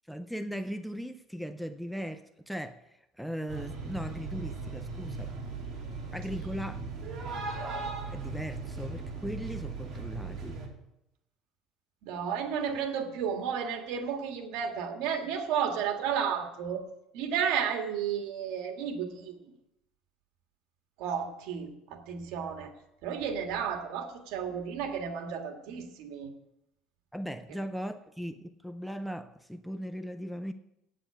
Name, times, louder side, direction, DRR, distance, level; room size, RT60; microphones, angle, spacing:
voice 1, 0.1-5.3 6.1-6.8 8.1-10.6 27.1-30.5, equal, ahead, 0.4 m, -38 dB
sound 1, 3.5-10.7, right 3 dB, 30° right, 2.6 m, -38 dB
voice 2, 12.0-16.8 17.1-19.4 21.0-22.7 23.0-26.3, right 7 dB, 70° right, 1.6 m, -32 dB
8.5 x 7.7 x 8.4 m
cardioid pair, 160°, 0 cm